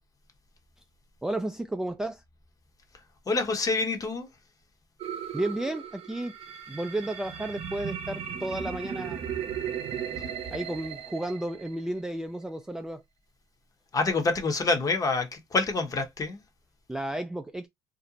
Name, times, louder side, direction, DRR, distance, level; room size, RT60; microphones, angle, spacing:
voice 1, 1.2-2.2 5.3-6.3 6.7-9.2 10.5-13.0 16.9-17.7, right 1 dB, 5° right, 0.3 m, -32 dB
voice 2, 3.3-4.3 13.9-16.4, left 3 dB, 30° left, 0.8 m, -27 dB
sound 1, 5.0-12.1, right 8 dB, 55° right, 0.6 m, -36 dB
2.5 x 2.1 x 2.8 m
supercardioid pair, 80°, 11 cm